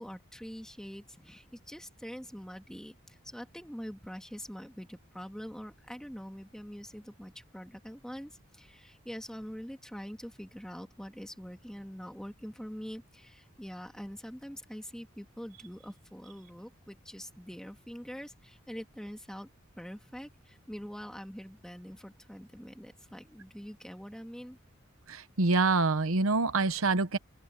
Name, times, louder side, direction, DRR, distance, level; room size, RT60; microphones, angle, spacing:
voice 1, 0.0-19.5 19.8-24.6, equal, 5° left, 2.5 m, -44 dB
voice 2, 25.1-27.2, right 3 dB, 85° right, 1.0 m, -26 dB
head